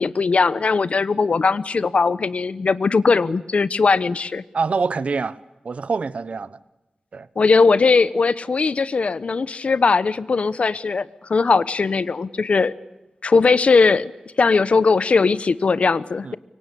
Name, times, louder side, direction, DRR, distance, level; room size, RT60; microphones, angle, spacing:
voice 1, 0.0-4.4 7.4-12.7 13.2-14.1 14.4-16.3, left 4 dB, 65° left, 1.0 m, -19 dB
voice 2, 4.5-5.4 5.6-6.6 7.1-7.3 16.2-16.3, right 4 dB, 70° right, 1.1 m, -25 dB
26.0 x 24.0 x 8.4 m
wide cardioid pair, 75°, 2 cm